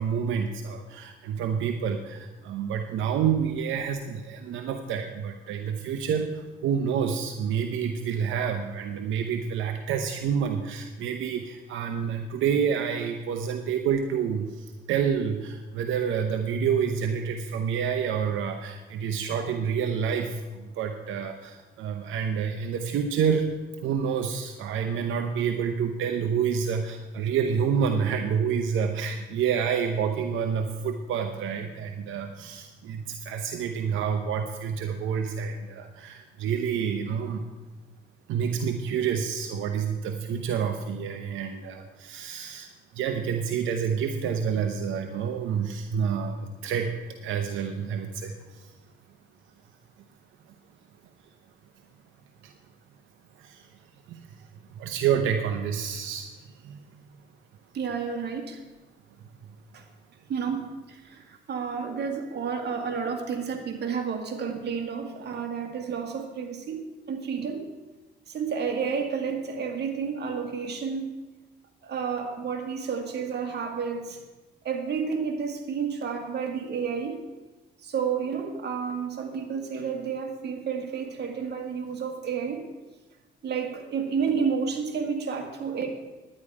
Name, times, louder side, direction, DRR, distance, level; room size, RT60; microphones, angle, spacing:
voice 1, 0.0-23.5 23.8-37.5 38.3-42.7 42.9-46.9 47.2-48.8 52.4-52.5 53.4-53.7 54.1-56.3 56.5-56.8, right 7 dB, 80° right, 5 dB, 0.8 m, -28 dB
voice 2, 57.7-58.6 59.7-59.8 60.3-67.7 68.3-71.1 71.8-74.2 74.6-77.2 77.8-82.7 83.4-85.9, right 6 dB, 55° right, 4 dB, 1.9 m, -31 dB
11.0 x 9.9 x 4.8 m, 1.2 s
cardioid pair, 90°, 20 cm